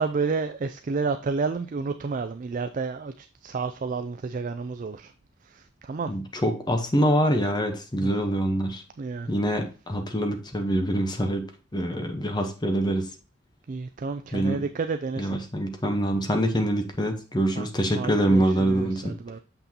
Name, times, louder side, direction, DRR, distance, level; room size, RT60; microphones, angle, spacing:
voice 1, 0.0-5.1 5.5-6.1 8.0-8.1 9.0-9.3 13.7-15.4 17.6-17.7 18.0-19.4, right 4 dB, 45° right, 0.4 m, -30 dB
voice 2, 6.1-8.8 9.3-11.5 11.7-13.1 14.3-14.6 15.2-19.1, right 1 dB, 25° left, 0.9 m, -25 dB
6.8 x 6.0 x 2.8 m
head